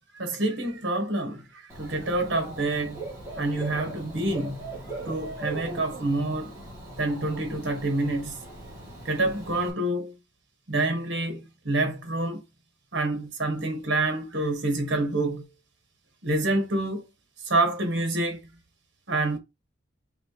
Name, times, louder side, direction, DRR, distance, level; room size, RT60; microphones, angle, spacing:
voice 1, 0.2-3.0 3.4-4.6 5.0-6.5 7.0-8.4 9.0-10.1 10.7-12.4 12.9-15.4 16.2-17.0 17.4-18.4 19.1-19.4, right 2 dB, 60° right, 1.2 m, -27 dB
Dog / Bird, 1.7-9.7, right 2 dB, 15° right, 2.0 m, -40 dB
4.2 x 3.6 x 3.0 m
head